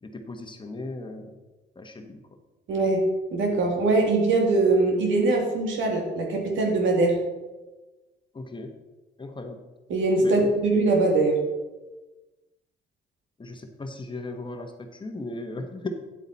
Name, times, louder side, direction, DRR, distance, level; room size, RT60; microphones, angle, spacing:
voice 1, 0.0-1.3 1.7-2.2 8.3-8.7 9.2-9.6 10.2-10.4 13.4-15.9, left 2 dB, 25° left, 5 dB, 1.3 m, -37 dB
voice 2, 2.7-3.0 3.3-7.2 9.9-11.4, right 2 dB, 75° right, 1 dB, 2.3 m, -22 dB
10.0 x 8.1 x 4.1 m, 1.1 s
cardioid pair, 90°, 20 cm